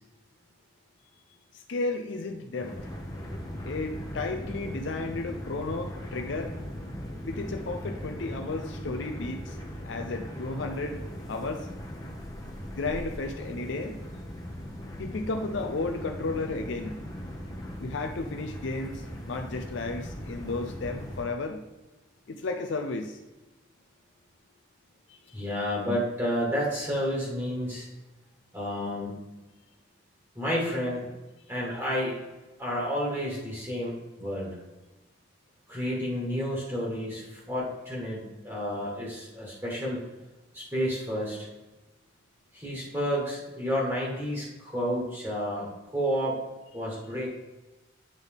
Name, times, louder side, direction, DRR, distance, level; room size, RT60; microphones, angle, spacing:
voice 1, 1.5-2.7 3.6-6.5 7.3-9.6 9.8-11.0 11.3-11.7 12.8-14.0 15.0-16.9 17.8-21.6 22.3-23.2 25.1-25.5, left 3 dB, 65° left, 4 dB, 0.5 m, -33 dB
sound 1, 2.6-21.2, equal, 20° left, 0.9 m, -39 dB
voice 2, 25.3-27.9 28.5-29.1 30.3-31.1 31.5-32.2 32.6-34.6 35.7-40.0 40.5-41.5 42.5-46.4 46.7-47.3, equal, 15° right, -5 dB, 1.5 m, -30 dB
8.9 x 4.0 x 3.5 m, 1.1 s
head